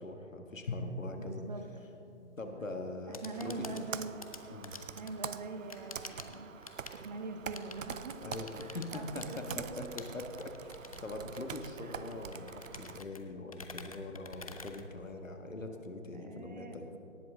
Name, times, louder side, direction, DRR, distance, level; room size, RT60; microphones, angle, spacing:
voice 1, 0.0-1.4 2.4-3.8 4.5-4.8 8.2-10.7 11.0-16.9, left 2 dB, 85° left, 4 dB, 1.5 m, -42 dB
Drum, 0.7-3.6, left 2 dB, 45° left, 1.2 m, -44 dB
voice 2, 1.2-1.6 3.1-4.2 5.0-6.5 6.9-8.2 8.6-9.9 11.8-12.1 16.1-17.0, right 3 dB, 35° right, 6 dB, 0.8 m, -43 dB
sound 1, 2.9-15.5, left 4 dB, 30° left, 0.5 m, -50 dB
Computer keyboard, 3.3-13.0, right 7 dB, 80° right, 0.6 m, -45 dB
18.0 x 7.7 x 3.8 m, 2.9 s
figure-of-eight pair, 140°, 38 cm